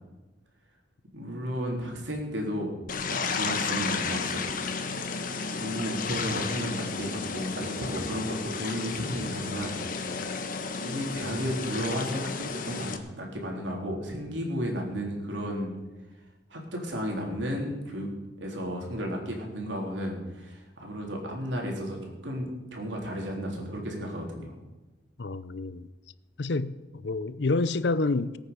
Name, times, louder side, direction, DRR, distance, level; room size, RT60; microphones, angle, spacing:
voice 1, 1.1-2.7 3.1-4.5 5.6-9.8 10.8-15.7 16.5-18.1 18.4-24.5, equal, 85° right, 3.6 m, -33 dB
sound 1, 2.9-13.0, left 4 dB, 50° left, 1.2 m, -33 dB
voice 2, 25.2-25.9 26.4-28.4, left 3 dB, 70° left, 0.6 m, -28 dB
19.0 x 9.0 x 6.8 m
head